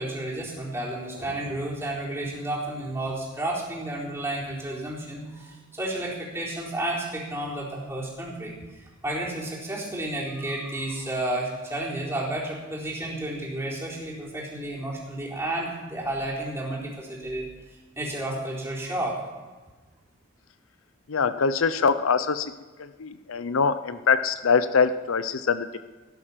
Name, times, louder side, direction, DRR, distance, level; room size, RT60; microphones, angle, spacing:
voice 1, 0.0-8.5 9.0-17.5 18.0-19.2, right 1 dB, 15° right, -5 dB, 4.2 m, -31 dB
voice 2, 21.1-22.5 22.8-25.8, left 5 dB, 75° left, 12 dB, 0.6 m, -23 dB
17.5 x 11.0 x 5.8 m, 1.3 s
head